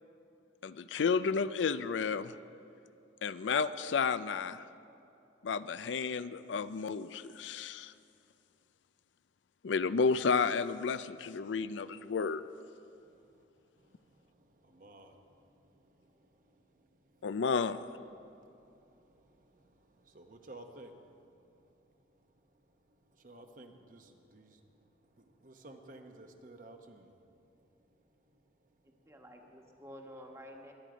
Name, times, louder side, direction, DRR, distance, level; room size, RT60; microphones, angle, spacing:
voice 1, 0.6-2.3 3.2-4.6 5.4-7.9 9.6-12.4 17.2-17.8, left 5 dB, 85° left, 14 dB, 0.4 m, -31 dB
voice 2, 12.9-13.4 13.8-17.4 18.1-29.1, right 2 dB, 45° right, 5 dB, 1.0 m, -57 dB
voice 3, 28.8-30.7, equal, 15° right, 1 dB, 1.3 m, -51 dB
22.5 x 9.3 x 5.1 m, 2.7 s
head